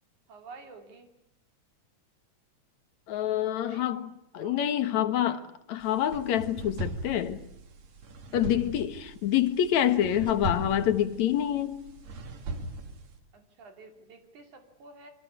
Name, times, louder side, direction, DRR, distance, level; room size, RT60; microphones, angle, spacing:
voice 1, 0.3-1.1 3.6-3.9 4.3-4.6 5.2-5.4 13.3-15.1, right 3 dB, 80° right, 4.3 m, -50 dB
voice 2, 3.1-5.4 5.7-7.4 8.3-11.8, left 11 dB, 70° left, 2.7 m, -27 dB
sound 1, 5.8-13.2, right 2 dB, 65° right, 3.5 m, -39 dB
27.5 x 25.0 x 8.3 m
omnidirectional pair, 3.4 m